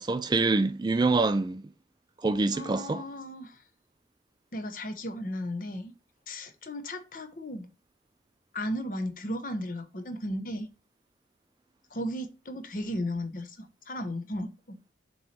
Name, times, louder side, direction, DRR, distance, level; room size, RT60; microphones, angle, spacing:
voice 1, 0.0-1.7 2.2-3.0, right 3 dB, 25° right, 0.3 m, -26 dB
voice 2, 2.5-3.6 4.5-5.9 6.3-7.7 8.5-10.7 11.9-14.8, left 1 dB, 45° left, 0.9 m, -35 dB
7.0 x 3.2 x 4.3 m
head